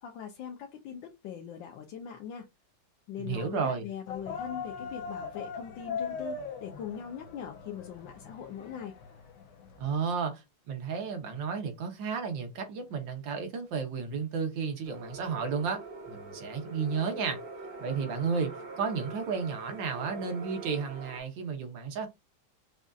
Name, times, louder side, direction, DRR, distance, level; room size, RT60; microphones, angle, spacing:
voice 1, 0.0-2.5 3.1-8.9, left 8 dB, 80° left, 1.5 m, -41 dB
voice 2, 3.2-3.8 9.8-17.4 17.8-22.1, right 5 dB, 80° right, 1.8 m, -33 dB
sound 1, 4.1-9.9, left 5 dB, 65° left, 1.2 m, -40 dB
sound 2, 14.8-21.2, right 3 dB, 55° right, 1.8 m, -43 dB
6.1 x 2.6 x 2.4 m
omnidirectional pair, 2.0 m